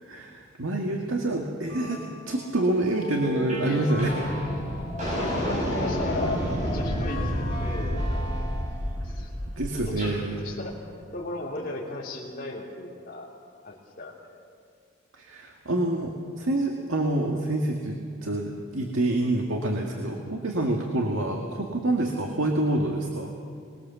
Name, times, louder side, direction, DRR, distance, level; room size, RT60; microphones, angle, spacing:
voice 1, 0.0-2.0 2.3-4.3 9.6-10.5 15.2-23.3, right 1 dB, 85° right, 1 dB, 2.0 m, -27 dB
sound 1, 1.7-9.0, left 1 dB, 20° left, 3.6 m, -37 dB
sound 2, 3.5-3.7 4.0-10.2, equal, 40° right, 7.4 m, -30 dB
voice 2, 3.6-3.9 5.0-8.5 9.0-9.3 9.8-10.1 10.4-13.3 13.6-14.3 20.6-20.8, left 2 dB, 45° left, -7 dB, 3.4 m, -36 dB
25.5 x 20.5 x 7.1 m, 2.2 s
head